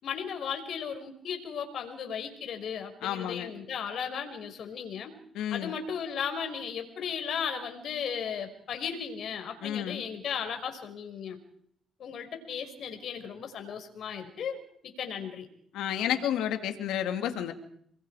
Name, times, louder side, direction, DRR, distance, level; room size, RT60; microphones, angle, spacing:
voice 1, 0.0-5.1 5.4-11.4 12.0-15.5, left 7 dB, 65° left, 5 dB, 5.5 m, -36 dB
voice 2, 3.0-3.5 5.3-5.7 9.6-10.0 15.7-17.5, left 10 dB, 90° left, 7 dB, 2.6 m, -31 dB
28.5 x 22.0 x 5.0 m, 0.64 s
cardioid pair, 90°, 0 cm